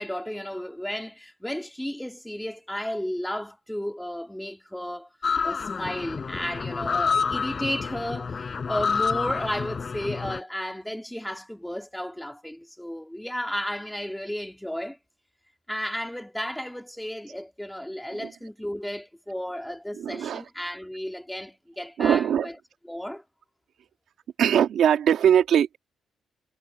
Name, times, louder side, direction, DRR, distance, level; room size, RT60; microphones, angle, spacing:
voice 1, 0.0-5.1 5.4-15.0 15.7-22.6 22.8-23.2, equal, 5° left, 2.4 m, -33 dB
sound 1, 5.2-10.4, left 5 dB, 40° left, 3.8 m, -28 dB
voice 2, 20.0-20.4 22.0-22.5 24.4-25.8, right 9 dB, 70° right, 1.7 m, -21 dB
cardioid pair, 90°, 0 cm